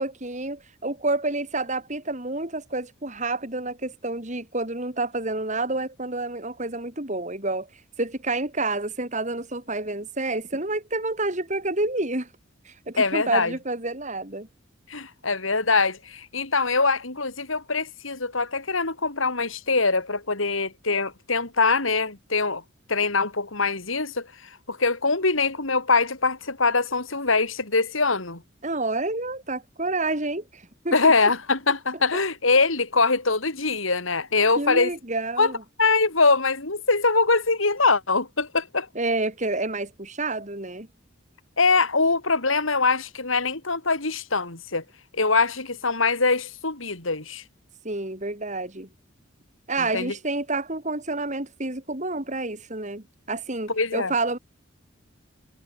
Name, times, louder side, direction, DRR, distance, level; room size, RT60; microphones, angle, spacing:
voice 1, 0.0-7.7 8.0-12.3 12.7-14.5 28.6-31.1 34.6-35.6 39.0-40.9 47.8-48.9 49.7-54.4, right 2 dB, 35° right, 3.7 m, -29 dB
voice 2, 13.0-13.5 14.9-22.6 22.9-24.3 24.7-28.4 30.9-34.9 35.4-35.5 35.8-38.9 41.6-44.8 45.1-47.4 49.8-50.1 53.7-54.1, left 3 dB, 90° left, 4.4 m, -23 dB
head